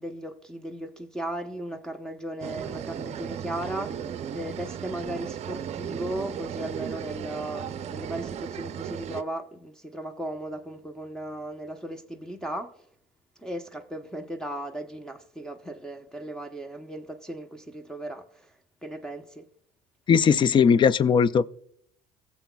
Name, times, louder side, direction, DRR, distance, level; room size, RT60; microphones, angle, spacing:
voice 1, 0.0-4.0 4.3-12.7 13.4-18.2 18.8-19.4, right 1 dB, 5° left, 0.8 m, -36 dB
sound 1, 2.4-9.2, right 9 dB, 40° right, 0.6 m, -35 dB
voice 2, 20.1-21.5, left 6 dB, 30° left, 0.4 m, -19 dB
17.0 x 7.2 x 2.3 m
supercardioid pair, 95°, 17 cm